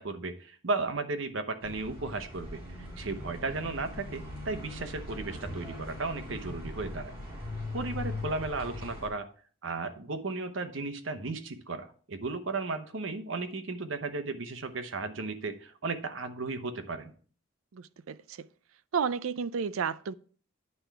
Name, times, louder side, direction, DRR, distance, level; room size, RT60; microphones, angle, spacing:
voice 1, 0.0-7.1 7.7-9.3 9.6-17.1, right 3 dB, 70° right, 0.9 m, -35 dB
sound 1, 1.6-9.1, left 2 dB, 25° right, 2.6 m, -40 dB
voice 2, 17.7-18.5 18.9-20.1, right 6 dB, 90° right, 0.4 m, -32 dB
9.6 x 3.4 x 5.9 m
head